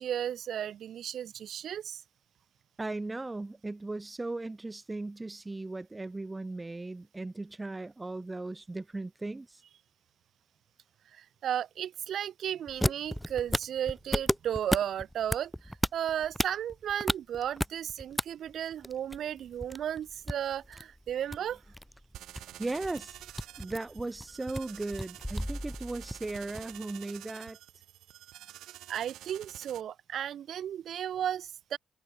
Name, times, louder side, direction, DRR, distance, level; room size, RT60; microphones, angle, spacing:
voice 1, 0.0-2.0 11.1-21.6 28.9-31.8, right 10 dB, 65° right, 4.0 m, -34 dB
voice 2, 2.8-9.6 22.6-23.2 23.6-27.6, right 2 dB, 20° right, 2.3 m, -37 dB
sound 1, 12.7-18.2 18.5-26.8, equal, ahead, 2.0 m, -34 dB
sound 2, 22.1-29.8, right 14 dB, 85° right, 6.5 m, -49 dB
cardioid pair, 90°, 0 cm